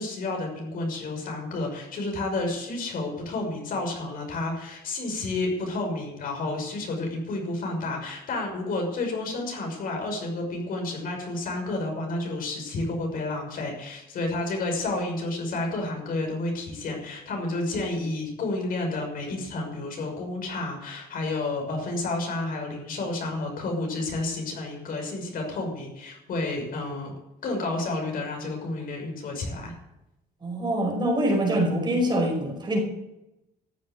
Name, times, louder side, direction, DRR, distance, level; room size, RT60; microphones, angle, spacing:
voice 1, 0.0-27.1 27.4-29.7, left 2 dB, 60° left, 2 dB, 6.1 m, -30 dB
voice 2, 30.4-32.8, right 1 dB, 25° right, 1 dB, 5.1 m, -24 dB
14.5 x 8.2 x 9.3 m, 0.92 s
cardioid pair, 110°, 17 cm